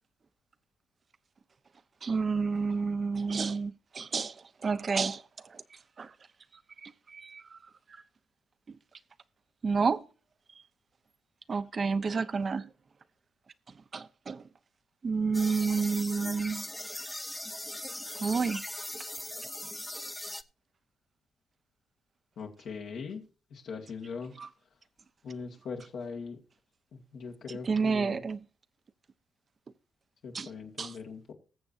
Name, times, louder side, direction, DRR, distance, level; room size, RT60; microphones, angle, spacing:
voice 1, 2.0-4.3 4.6-5.2 6.0-6.1 6.8-7.4 9.6-10.0 11.5-12.7 13.9-14.4 15.0-16.7 18.2-18.6 27.7-28.4 30.3-30.5 30.8-30.9, right 5 dB, 45° right, 0.9 m, -29 dB
sound 1, 15.3-20.4, left 1 dB, 10° left, 0.8 m, -39 dB
voice 2, 22.4-24.3 25.2-26.4 26.9-28.3 30.2-31.3, left 5 dB, 70° left, 1.8 m, -41 dB
20.5 x 7.1 x 2.6 m
cardioid pair, 70°, 0 cm